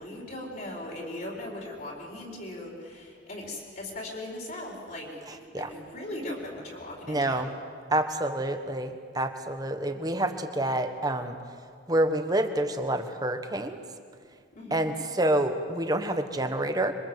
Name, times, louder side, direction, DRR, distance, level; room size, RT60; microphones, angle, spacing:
voice 1, 0.0-7.4 14.5-14.9, left 1 dB, 45° left, -1 dB, 4.6 m, -39 dB
voice 2, 7.1-7.5 7.9-11.4 11.9-13.8 14.7-16.9, right 1 dB, 20° right, 7 dB, 1.4 m, -27 dB
26.5 x 23.5 x 8.2 m, 2.2 s
head